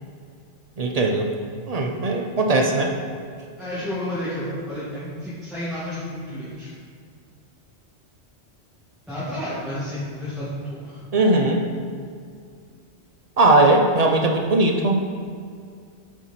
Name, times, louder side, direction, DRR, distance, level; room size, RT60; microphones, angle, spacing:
voice 1, 0.8-1.3 1.7-2.9 11.1-11.6 13.4-15.0, right 2 dB, 45° right, 1 dB, 0.5 m, -19 dB
voice 2, 3.6-6.7 9.1-11.0, left 1 dB, ahead, -12 dB, 1.5 m, -31 dB
7.1 x 4.3 x 4.2 m, 2.2 s
omnidirectional pair, 1.2 m